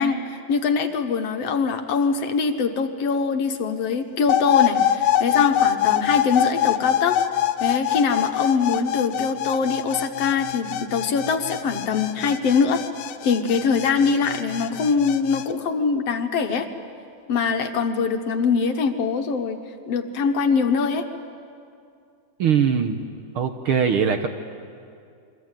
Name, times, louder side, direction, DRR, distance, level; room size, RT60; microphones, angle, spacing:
voice 1, 0.0-7.2 7.6-12.8 13.2-16.7 17.3-19.6 19.9-21.0, left 5 dB, 65° left, 6 dB, 2.2 m, -23 dB
sound 1, 4.3-15.5, left 11 dB, 80° left, 2.1 m, -24 dB
voice 2, 22.4-23.0 23.3-24.3, right 7 dB, 60° right, 6 dB, 1.6 m, -21 dB
28.0 x 23.0 x 9.1 m, 2.4 s
omnidirectional pair, 3.3 m